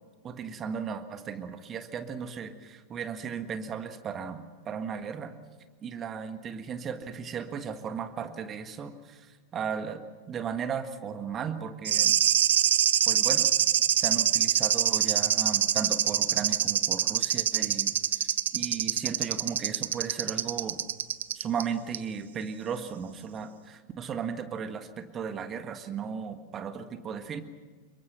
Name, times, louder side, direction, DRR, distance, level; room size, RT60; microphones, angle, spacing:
voice 1, 0.2-5.3 5.8-12.2 13.1-13.5 14.0-18.3 18.5-20.8 21.4-27.4, right 7 dB, 25° right, 9 dB, 1.7 m, -36 dB
sound 1, 11.8-21.6 21.9-22.0, right 10 dB, 60° right, 0.7 m, -25 dB
26.5 x 22.5 x 6.0 m, 1.5 s
figure-of-eight pair, 90°, 0 cm